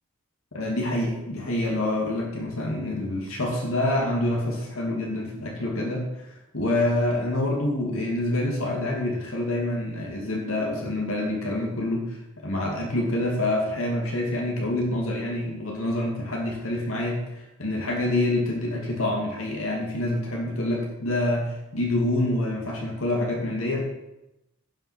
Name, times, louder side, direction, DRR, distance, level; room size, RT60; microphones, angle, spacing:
voice 1, 0.5-23.8, left 1 dB, 90° left, -1 dB, 2.6 m, -27 dB
17.0 x 6.0 x 6.2 m, 0.91 s
head